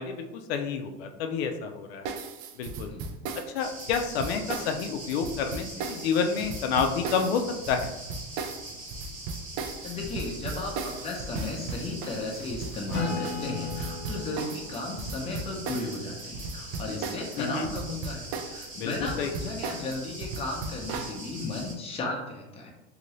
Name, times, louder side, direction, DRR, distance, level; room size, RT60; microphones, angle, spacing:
voice 1, 0.0-2.1 2.6-2.9 3.5-7.9 17.4-17.7 18.8-18.9 19.2-19.3, left 6 dB, 85° left, 5 dB, 0.5 m, -29 dB
sound 1, 2.0-17.4 17.6-21.2, right 4 dB, 50° right, 0.4 m, -36 dB
sound 2, 3.6-21.7, right 2 dB, 25° right, 1.1 m, -42 dB
voice 2, 9.8-22.7, left 2 dB, 20° left, 0 dB, 0.6 m, -35 dB
Acoustic guitar / Strum, 12.9-16.5, left 4 dB, 45° left, 0.9 m, -36 dB
2.8 x 2.6 x 3.0 m, 1.0 s
supercardioid pair, 125°, 30 cm